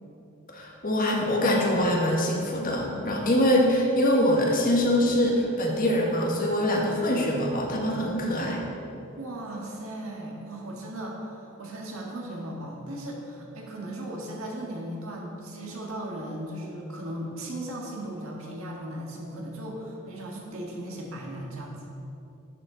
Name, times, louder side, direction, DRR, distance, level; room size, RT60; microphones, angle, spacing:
voice 1, 0.5-8.6, left 1 dB, 40° left, -1 dB, 1.4 m, -24 dB
voice 2, 9.2-21.9, right 1 dB, 70° right, -2 dB, 1.7 m, -37 dB
10.5 x 7.1 x 3.9 m, 2.9 s
head